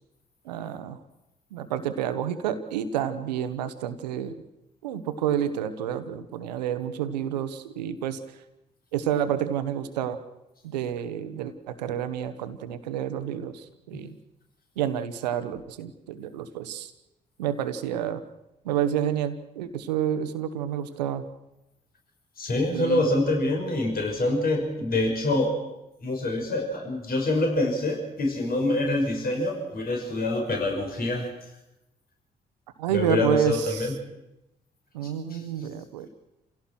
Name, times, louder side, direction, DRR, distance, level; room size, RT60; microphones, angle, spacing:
voice 1, 0.4-1.0 1.5-4.3 4.8-8.2 8.9-10.2 10.6-14.1 14.8-16.9 17.4-18.2 18.6-21.2 22.7-23.1 32.8-33.9 34.9-36.1, right 10 dB, 80° right, 11 dB, 1.3 m, -29 dB
voice 2, 22.4-25.5 26.0-31.3 32.9-33.9 35.3-35.4, left 2 dB, 45° left, 1 dB, 6.0 m, -26 dB
29.0 x 17.0 x 6.2 m, 0.93 s
figure-of-eight pair, 40°, 21 cm